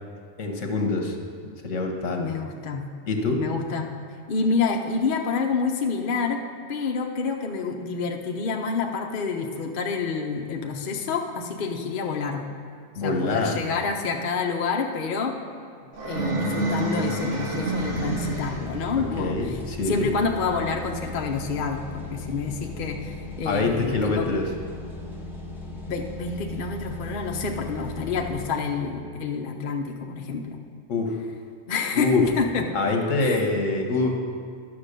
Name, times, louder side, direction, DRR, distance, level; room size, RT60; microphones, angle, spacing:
voice 1, 0.4-2.2 3.1-3.4 13.0-13.6 19.2-20.1 23.4-24.5 30.9-31.2 31.9-32.2 32.7-34.1, left 3 dB, 70° left, 3 dB, 1.5 m, -25 dB
voice 2, 2.2-2.8 3.4-4.0 4.3-6.4 6.7-12.4 13.0-15.4 16.0-19.5 19.9-24.3 25.9-30.6 31.7-32.6 33.2-33.5, left 5 dB, 50° left, 2 dB, 0.8 m, -28 dB
sound 1, 15.9-18.8, right 2 dB, 65° right, 1.6 m, -28 dB
sound 2, 17.8-28.5, left 2 dB, ahead, 1.2 m, -37 dB
11.0 x 6.2 x 6.6 m, 2.2 s
omnidirectional pair, 1.3 m